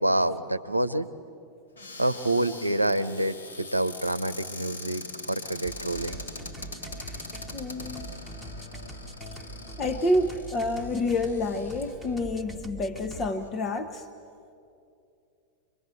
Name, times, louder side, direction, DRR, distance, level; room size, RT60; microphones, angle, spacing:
voice 1, 0.0-1.1 2.0-6.2, right 1 dB, 85° right, 11 dB, 0.8 m, -27 dB
Cupboard open or close, 1.7-12.1 12.8-12.9 13.1-13.5, left 3 dB, 75° left, 4.1 m, -42 dB
sound 1, 5.6-13.3, right 1 dB, 5° left, 1.5 m, -42 dB
voice 2, 7.5-8.1 9.8-14.1, left 2 dB, 30° left, 6 dB, 1.1 m, -28 dB
25.0 x 23.0 x 8.4 m, 2.6 s
figure-of-eight pair, 90°, 0 cm